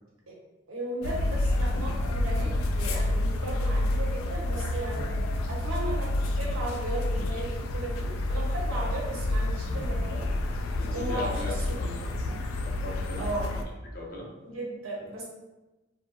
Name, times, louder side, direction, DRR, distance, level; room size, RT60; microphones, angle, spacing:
voice 1, 0.7-5.1 5.5-10.3 10.9-11.8 13.2-13.5 14.4-15.2, right 1 dB, 85° right, -3 dB, 0.9 m, -36 dB
sound 1, 1.0-13.6, left 1 dB, 90° left, 0.3 m, -29 dB
sound 2, 2.2-2.8 4.9-5.3 7.1-7.4 9.7-10.2 12.0-12.4, right 1 dB, 50° right, 0.3 m, -45 dB
voice 2, 10.8-12.2 12.6-13.6 13.9-14.3, left 1 dB, 45° left, -3 dB, 0.6 m, -38 dB
2.7 x 2.3 x 2.5 m, 1.1 s
head